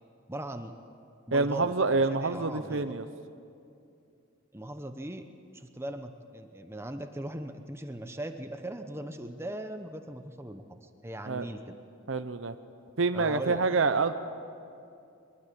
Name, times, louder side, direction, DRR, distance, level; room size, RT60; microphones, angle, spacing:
voice 1, 0.3-0.7 1.3-2.9 4.5-5.3 5.5-11.7 13.1-13.6, right 1 dB, 10° right, 7 dB, 0.9 m, -39 dB
voice 2, 1.3-3.1 11.3-11.4 12.1-12.5 13.0-14.1, right 3 dB, 70° right, 9 dB, 0.9 m, -27 dB
22.5 x 21.5 x 8.4 m, 2.5 s
head